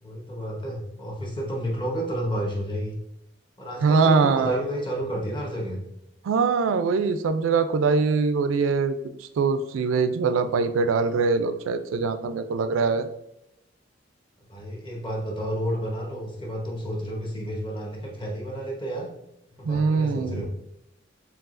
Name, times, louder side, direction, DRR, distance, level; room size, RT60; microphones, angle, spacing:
voice 1, 0.0-3.0 3.6-5.8 14.5-19.1 19.6-20.5, equal, 25° left, -1 dB, 0.9 m, -31 dB
voice 2, 3.8-4.6 6.2-9.0 9.4-13.1 19.6-20.5, right 4 dB, 85° right, 10 dB, 0.3 m, -22 dB
4.6 x 3.5 x 2.5 m, 0.85 s
head